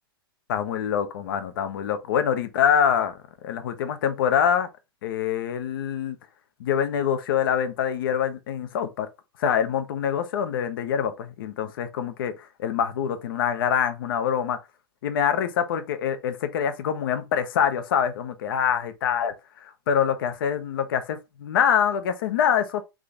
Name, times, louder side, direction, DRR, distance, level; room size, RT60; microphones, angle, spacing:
voice 1, 0.5-3.2 3.4-4.7 5.0-6.2 6.6-9.1 9.4-12.3 12.6-14.6 15.0-19.3 19.9-22.8, left 8 dB, 60° left, 0.8 m, -25 dB
3.7 x 3.3 x 3.7 m
hypercardioid pair, 100°, 13 cm